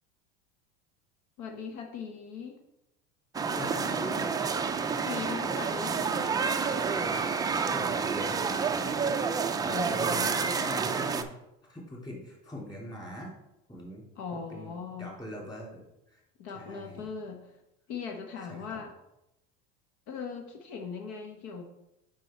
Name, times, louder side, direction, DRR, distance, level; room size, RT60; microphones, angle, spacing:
voice 1, 1.4-2.6 5.0-6.4 9.7-10.7 14.2-15.1 16.4-17.5 17.9-18.9 20.1-21.6, left 5 dB, 70° left, 3 dB, 1.1 m, -39 dB
sound 1, 3.3-11.2, right 5 dB, 10° right, 0.3 m, -29 dB
voice 2, 3.5-4.3 7.7-9.2 9.6-11.3 11.7-13.3 13.7-14.0 14.3-15.8 16.1-16.2 16.5-17.1 18.5-18.8, equal, 10° left, -3 dB, 2.7 m, -42 dB
6.4 x 5.4 x 4.3 m, 0.88 s
supercardioid pair, 125°, 33 cm